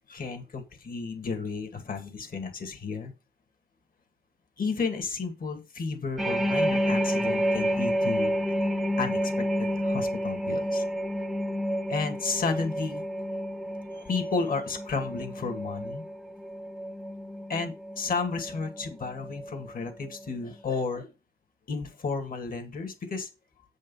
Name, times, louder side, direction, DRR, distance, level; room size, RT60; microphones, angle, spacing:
voice 1, 0.0-3.1 4.6-8.3 9.0-10.8 11.9-13.0 13.9-16.0 17.5-21.1 21.7-23.3, left 4 dB, 50° left, 5 dB, 2.3 m, -32 dB
sound 1, 6.2-19.7 20.0-20.3, equal, ahead, 0.8 m, -30 dB
8.2 x 5.3 x 5.6 m, 0.28 s
cardioid pair, 110°, 18 cm